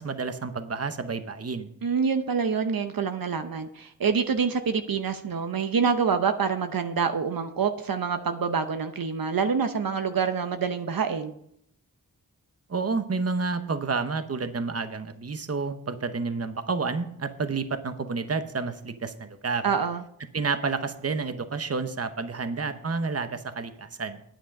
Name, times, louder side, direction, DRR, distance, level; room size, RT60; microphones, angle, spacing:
voice 1, 0.0-1.7 12.7-19.6 20.3-24.2, right 4 dB, 45° right, 0.9 m, -30 dB
voice 2, 1.8-11.3 19.6-20.0, right 6 dB, 75° right, 0.8 m, -26 dB
9.6 x 9.0 x 5.3 m
wide cardioid pair, 90°, 35 cm